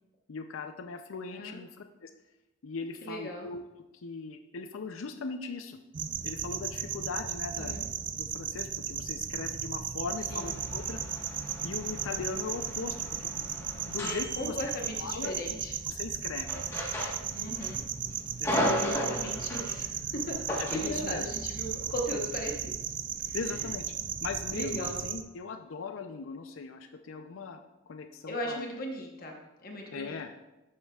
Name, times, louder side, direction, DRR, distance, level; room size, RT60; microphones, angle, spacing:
voice 1, 0.3-1.7 2.0-2.1 2.6-3.6 4.0-5.8 6.2-7.8 8.2-11.0 11.6-13.3 13.9-14.6 15.0-15.3 15.9-16.5 18.4-19.1 20.6-21.3 23.3-23.9 24.2-28.7 29.9-30.3, left 4 dB, 80° left, 7 dB, 0.5 m, -39 dB
voice 2, 3.0-3.5 7.5-7.9 10.3-10.5 14.0-15.8 17.3-17.8 18.5-22.9 23.2-23.7 24.0-24.1 24.5-25.0 28.3-30.2, left 1 dB, 45° left, 1 dB, 1.0 m, -38 dB
sound 1, 5.9-25.2, right 9 dB, 40° right, 0.4 m, -36 dB
sound 2, 10.3-15.3 16.4-17.7 18.0-19.7 20.5-21.0, equal, 15° left, 1.3 m, -35 dB
12.0 x 7.5 x 2.4 m, 1.0 s
head